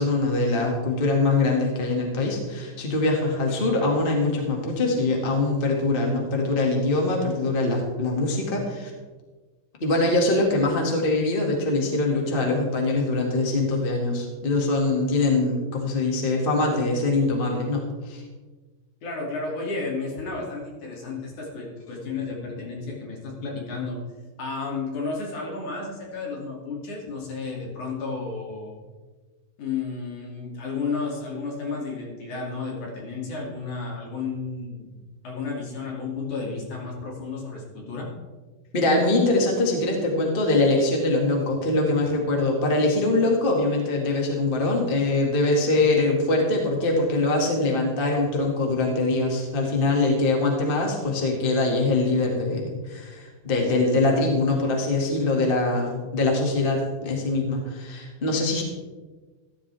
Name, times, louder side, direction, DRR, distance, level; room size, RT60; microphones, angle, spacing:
voice 1, 0.0-8.9 9.8-18.2 38.7-58.6, left 2 dB, 20° left, 0 dB, 1.5 m, -23 dB
voice 2, 19.0-24.0 24.4-28.8 29.6-34.9 35.2-38.1, left 4 dB, 55° left, -2 dB, 4.0 m, -32 dB
14.5 x 14.0 x 3.5 m, 1.3 s
omnidirectional pair, 4.2 m